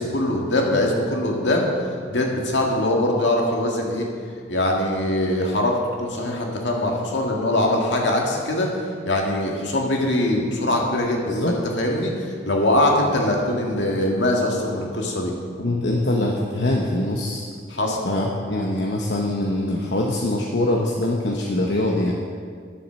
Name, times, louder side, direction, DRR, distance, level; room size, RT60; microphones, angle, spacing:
voice 1, 0.0-1.7 2.1-4.1 4.5-8.7 9.1-15.3 17.7-18.0, left 1 dB, 85° left, 0 dB, 1.9 m, -22 dB
voice 2, 11.2-11.6 15.6-17.4 18.0-22.1, left 1 dB, 70° left, -1 dB, 1.0 m, -23 dB
11.5 x 7.3 x 6.3 m, 2.1 s
head